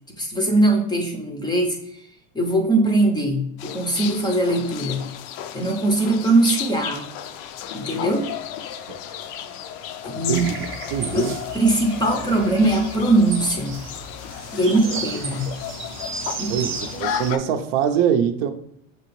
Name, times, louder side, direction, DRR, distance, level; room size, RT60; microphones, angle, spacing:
voice 1, 0.2-2.1 2.3-5.1 5.5-7.1 7.7-8.3 10.0-10.5 11.0-13.8 14.5-15.6 16.4-16.7, right 2 dB, 10° left, 0.5 m, -21 dB
sound 1, 3.6-17.4, left 9 dB, 60° left, 0.5 m, -34 dB
Race car auto racing, 6.5-15.6, left 7 dB, 85° left, 1.0 m, -41 dB
sound 2, 10.3-17.3, right 4 dB, 30° right, 0.7 m, -35 dB
voice 2, 10.9-11.4 14.9-15.0 16.5-18.5, right 8 dB, 65° right, 0.6 m, -23 dB
6.0 x 2.8 x 3.0 m
supercardioid pair, 120°, 39 cm